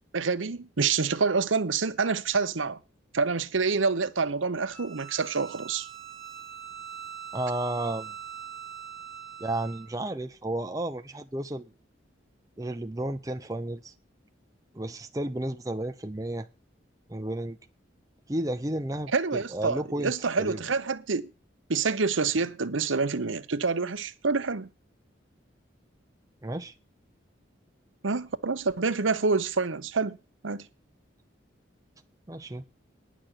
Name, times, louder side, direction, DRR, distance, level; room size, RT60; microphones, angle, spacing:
voice 1, 0.1-2.8 3.1-5.9 19.1-21.3 21.7-24.7 28.0-30.2 30.4-30.6, right 4 dB, 90° right, 0.9 m, -27 dB
Bowed string instrument, 4.7-9.9, right 8 dB, ahead, 1.6 m, -42 dB
voice 2, 7.3-8.1 9.4-11.6 12.6-13.9 14.7-16.5 17.1-17.6 18.3-20.1 20.4-20.6 26.4-26.7 32.3-32.6, right 1 dB, 20° right, 0.7 m, -32 dB
10.5 x 6.1 x 8.2 m
head